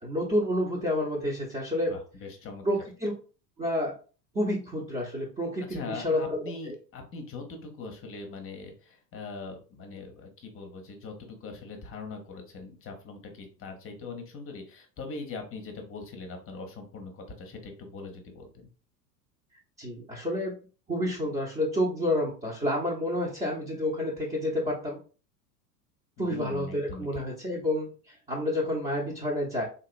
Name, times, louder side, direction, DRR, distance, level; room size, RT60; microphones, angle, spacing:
voice 1, 0.0-2.0 2.6-3.1 3.6-3.9 4.3-6.7 19.8-20.6 20.9-25.0 26.2-29.6, left 1 dB, 15° right, -5 dB, 0.8 m, -29 dB
voice 2, 1.9-2.6 5.7-18.7 26.2-27.2, left 3 dB, 25° left, 5 dB, 0.8 m, -41 dB
3.8 x 2.8 x 2.4 m, 0.37 s
figure-of-eight pair, 85°, 50 cm